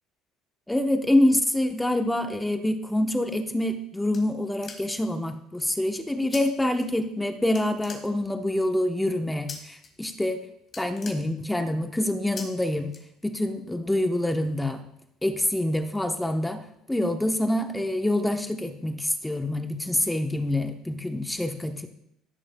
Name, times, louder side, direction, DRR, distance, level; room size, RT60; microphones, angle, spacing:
voice 1, 0.7-10.4 10.8-12.9 13.2-14.8 15.2-21.9, left 1 dB, 5° left, 6 dB, 1.0 m, -26 dB
sound 1, 3.5-5.2 6.3-6.4 6.7-7.3 7.5-8.5 9.5-9.9 10.2-10.4 10.6-11.8 12.4-12.5 12.9-13.5, left 5 dB, 40° left, 2.2 m, -42 dB
16.0 x 6.6 x 2.3 m, 0.78 s
supercardioid pair, 100°, 0 cm